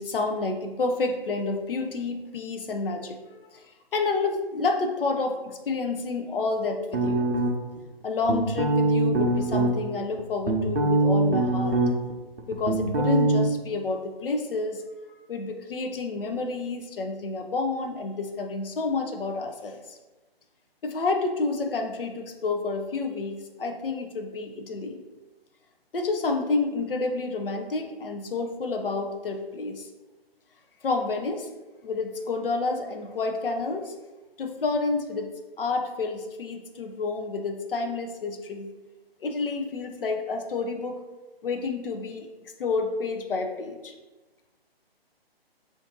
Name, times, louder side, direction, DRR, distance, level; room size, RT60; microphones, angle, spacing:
voice 1, 0.0-3.6 3.9-7.2 8.0-11.8 12.5-14.8 15.3-20.0 20.8-25.0 25.9-29.9 30.8-31.5 31.8-33.9 34.4-35.3 35.6-38.7 39.2-41.0 41.4-42.3 42.6-43.9, left 3 dB, 65° left, 4 dB, 0.5 m, -29 dB
sound 1, 6.9-7.8 8.3-9.7 10.2-12.1 12.4-13.5, right 2 dB, 90° right, 0.6 m, -23 dB
2.5 x 2.5 x 3.7 m, 1.2 s
figure-of-eight pair, 135°, 31 cm